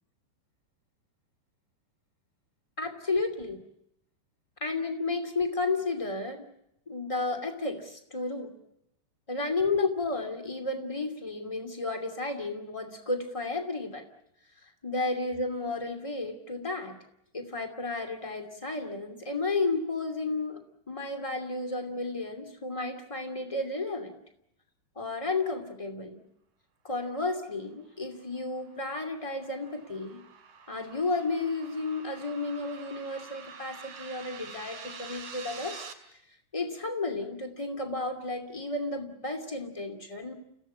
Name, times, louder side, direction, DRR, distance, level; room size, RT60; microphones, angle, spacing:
voice 1, 2.8-3.6 4.6-6.5 6.9-8.5 9.3-14.0 14.6-17.0 17.3-24.2 24.9-26.2 26.8-30.2 30.7-35.9 36.5-40.3, left 3 dB, 15° left, 5 dB, 1.4 m, -32 dB
sound 1, 28.2-35.9, right 6 dB, 50° right, 3.7 m, -47 dB
30.0 x 16.5 x 8.4 m, 0.79 s
omnidirectional pair, 5.0 m